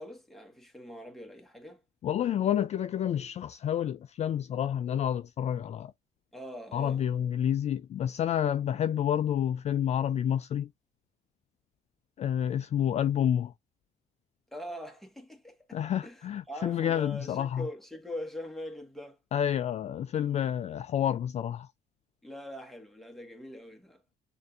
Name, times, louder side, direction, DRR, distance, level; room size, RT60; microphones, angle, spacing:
voice 1, 0.0-1.8 6.3-7.1 14.5-19.2 22.2-24.0, equal, ahead, 1.6 m, -43 dB
voice 2, 2.0-5.9 6.7-10.7 12.2-13.5 15.7-17.7 19.3-21.7, left 9 dB, 40° left, 0.4 m, -29 dB
6.4 x 2.7 x 2.5 m
cardioid pair, 110°, 17 cm